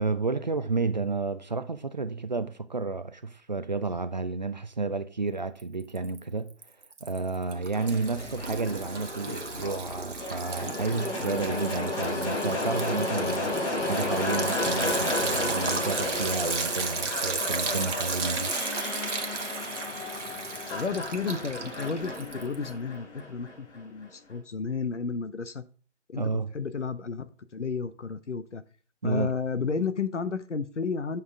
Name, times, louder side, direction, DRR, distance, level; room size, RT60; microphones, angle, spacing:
voice 1, 0.0-6.5 7.0-13.5 13.8-18.5 26.2-26.5 29.0-29.3, right 3 dB, 40° right, 0.5 m, -31 dB
Liquid, 5.6-6.2 6.5-22.7, right 4 dB, 75° right, 1.2 m, -35 dB
sound 1, 7.8-23.8, left 2 dB, 25° left, 4.1 m, -33 dB
voice 2, 20.7-25.6 26.1-28.6 29.0-31.2, left 5 dB, 75° left, 1.0 m, -32 dB
9.2 x 5.7 x 3.7 m
figure-of-eight pair, 155°, 36 cm